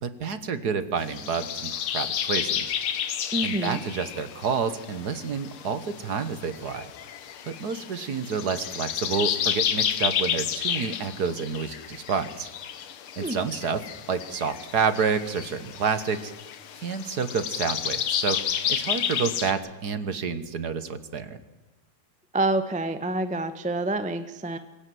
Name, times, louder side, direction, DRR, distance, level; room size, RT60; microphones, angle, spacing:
voice 1, 0.0-2.8 3.4-6.9 7.5-12.5 13.2-13.8 14.1-16.3 16.8-18.4 18.7-21.4, right 5 dB, 50° right, 11 dB, 1.6 m, -29 dB
sound 1, 1.0-19.5, left 9 dB, 75° left, 2.0 m, -31 dB
voice 2, 3.3-3.8 13.2-13.4 22.3-24.6, right 2 dB, 10° right, 9 dB, 0.5 m, -27 dB
24.5 x 17.0 x 7.8 m, 1.2 s
omnidirectional pair, 2.4 m